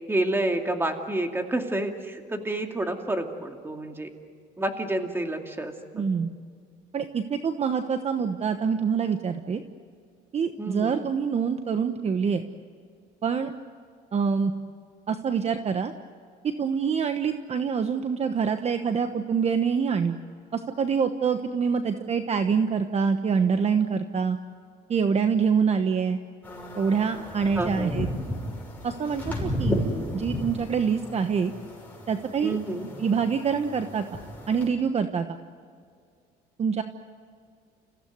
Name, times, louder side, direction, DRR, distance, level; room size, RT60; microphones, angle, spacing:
voice 1, 0.1-4.1 4.6-6.1 10.6-11.0 27.6-28.0 32.4-32.9, right 1 dB, 15° right, 4 dB, 2.5 m, -29 dB
voice 2, 5.9-6.3 6.9-9.6 10.3-12.4 13.2-13.5 14.1-14.5 15.1-15.9 16.4-20.2 20.5-24.4 24.9-26.2 26.7-28.1 28.8-29.8 30.1-31.5 32.1-32.6 33.0-34.0 34.5-35.4 36.6-36.8, right 6 dB, 40° right, 8 dB, 1.1 m, -25 dB
sound 1, 26.4-34.7, left 1 dB, 10° left, 6.5 m, -34 dB
29.5 x 16.0 x 9.5 m, 2.1 s
cardioid pair, 110°, 17 cm